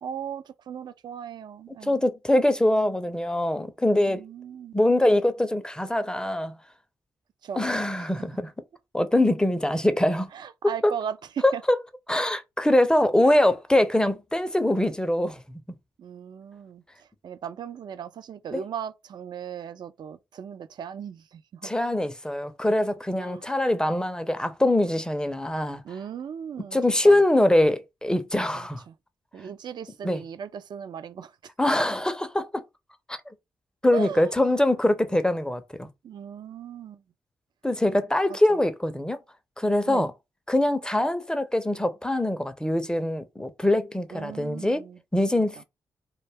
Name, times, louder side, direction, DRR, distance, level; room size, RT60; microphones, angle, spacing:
voice 1, 0.0-2.0 4.1-4.7 7.4-7.6 8.0-8.1 10.3-11.6 13.2-13.4 16.0-21.7 23.2-23.5 25.8-26.8 27.0-27.2 28.5-28.9 29.3-31.3 33.9-34.3 36.0-37.0 38.3-38.6 39.9-40.1 44.1-45.0 45.3-45.5, right 8 dB, 60° right, 0.4 m, -37 dB
voice 2, 1.8-4.2 4.7-6.5 7.5-8.5 8.9-10.3 11.4-11.5 12.1-15.4 18.5-18.6 21.6-25.8 26.7-28.8 30.0-30.2 31.6-32.5 33.8-35.9 37.6-39.2 39.6-40.1 40.5-44.8 45.1-45.6, left 1 dB, 10° left, 0.5 m, -23 dB
2.2 x 2.1 x 3.3 m
hypercardioid pair, 40°, 9 cm